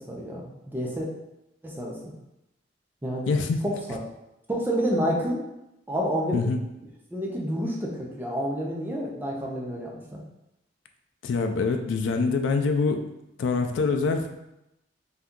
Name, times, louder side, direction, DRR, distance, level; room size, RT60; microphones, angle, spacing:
voice 1, 0.1-1.1 1.6-2.1 3.0-3.3 3.6-4.0 4.5-5.4 5.9-6.5 7.1-10.2, equal, 10° right, -3 dB, 0.4 m, -29 dB
voice 2, 3.3-3.6 6.3-6.6 11.2-13.0 13.4-14.3, left 4 dB, 75° left, 5 dB, 0.4 m, -24 dB
2.7 x 2.3 x 3.6 m, 0.90 s
head